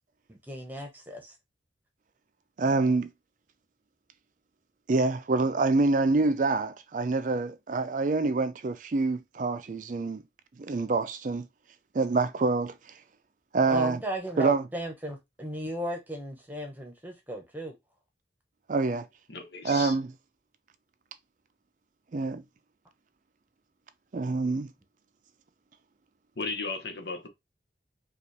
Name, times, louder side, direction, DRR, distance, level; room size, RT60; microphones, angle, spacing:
voice 1, 0.3-1.3 13.7-17.7, right 1 dB, 10° right, 1.0 m, -36 dB
voice 2, 2.6-3.1 4.9-10.2 10.6-11.5 11.9-12.8 13.5-14.0 14.4-14.6 18.7-19.1 19.6-20.1 22.1-22.4 24.1-24.7, right 3 dB, 45° right, 0.4 m, -26 dB
voice 3, 19.3-19.9 26.4-27.3, left 4 dB, 75° left, 1.0 m, -35 dB
5.1 x 2.4 x 3.3 m
head